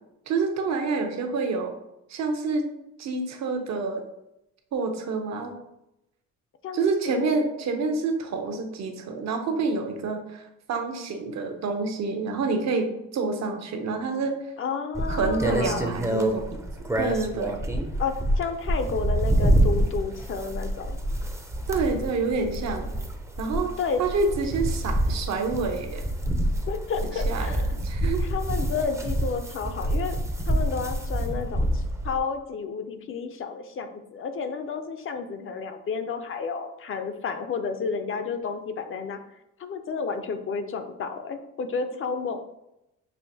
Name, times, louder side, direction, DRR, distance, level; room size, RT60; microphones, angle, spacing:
voice 1, 0.3-1.7 2.1-2.7 3.0-4.0 4.7-5.6 6.7-10.4 10.7-14.4 15.1-16.5 17.0-17.5 21.7-22.9 23.4-23.7 24.0-26.0 27.0-27.5 27.8-28.2, right 4 dB, 65° right, 4 dB, 0.8 m, -27 dB
voice 2, 14.6-16.0 18.0-21.0 23.8-24.0 26.7-27.7 28.2-30.2 30.5-39.2 39.6-42.4, left 5 dB, 45° left, 8 dB, 0.5 m, -31 dB
sound 1, 14.9-32.2, right 1 dB, 10° right, 0.5 m, -27 dB
5.6 x 2.5 x 2.7 m, 0.87 s
cardioid pair, 90°, 30 cm